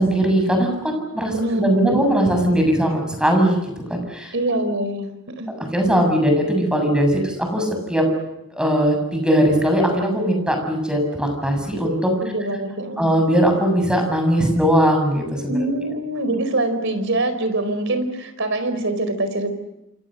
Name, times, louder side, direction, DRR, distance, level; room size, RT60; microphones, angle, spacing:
voice 1, 0.0-3.6 3.9-4.3 5.7-8.1 8.5-12.1 13.0-15.7, equal, 5° right, 3 dB, 7.1 m, -19 dB
voice 2, 1.3-2.2 4.3-5.5 12.2-13.1 15.5-19.5, right 2 dB, 65° right, 9 dB, 4.5 m, -24 dB
28.0 x 28.0 x 6.5 m, 0.88 s
head